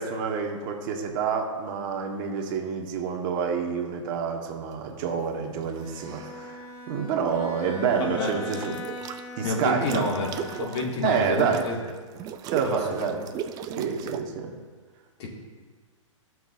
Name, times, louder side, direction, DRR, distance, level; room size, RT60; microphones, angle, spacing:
voice 1, 0.0-8.7 9.4-10.1 11.0-11.7 12.5-13.2 13.7-14.5, right 6 dB, 40° right, 2 dB, 1.3 m, -28 dB
sound 1, 5.6-6.3 8.2-9.2 9.6-14.2, right 8 dB, 25° right, 0.5 m, -37 dB
Bowed string instrument, 5.8-11.1, left 2 dB, 40° left, 1.4 m, -41 dB
voice 2, 8.0-8.3 9.4-11.8 12.6-13.1 15.2-15.3, left 3 dB, 55° left, -1 dB, 2.1 m, -29 dB
17.0 x 6.1 x 2.6 m, 1.5 s
hypercardioid pair, 135°, 16 cm